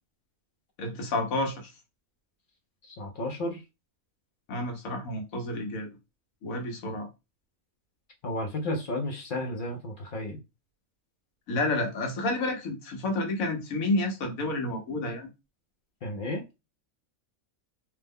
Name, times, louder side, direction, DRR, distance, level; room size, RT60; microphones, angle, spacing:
voice 1, 0.8-1.7 4.5-5.9 6.4-7.1 11.5-15.3, left 2 dB, 75° left, 1.2 m, -30 dB
voice 2, 2.8-3.6 8.2-10.4 16.0-16.4, left 1 dB, 55° left, 0.5 m, -33 dB
2.9 x 2.1 x 3.5 m
omnidirectional pair, 1.4 m